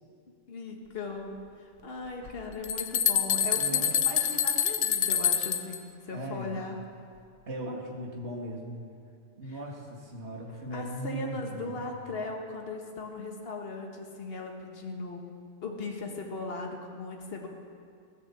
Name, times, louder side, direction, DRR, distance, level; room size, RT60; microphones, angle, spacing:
voice 1, 0.5-6.8 9.4-9.6 10.7-15.2 15.6-17.5, left 3 dB, 50° left, 1 dB, 1.7 m, -38 dB
sound 1, 2.2-5.8, left 9 dB, 80° left, 1.1 m, -26 dB
voice 2, 3.5-3.9 6.1-6.6 7.5-8.8 9.4-11.8, right 1 dB, 60° right, -1 dB, 2.4 m, -38 dB
16.5 x 10.5 x 7.2 m, 2.3 s
omnidirectional pair, 1.3 m